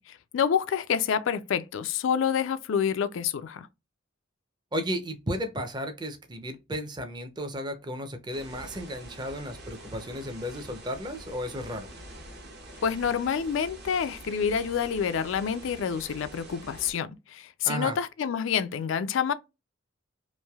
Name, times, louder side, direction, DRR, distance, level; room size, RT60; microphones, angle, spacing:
voice 1, 0.1-3.7 12.8-19.3, left 7 dB, 70° left, 0.3 m, -28 dB
voice 2, 4.7-11.9 17.6-18.0, equal, 20° right, 0.6 m, -34 dB
sound 1, 8.3-16.9, right 1 dB, 55° right, 0.9 m, -46 dB
3.1 x 2.6 x 2.3 m
head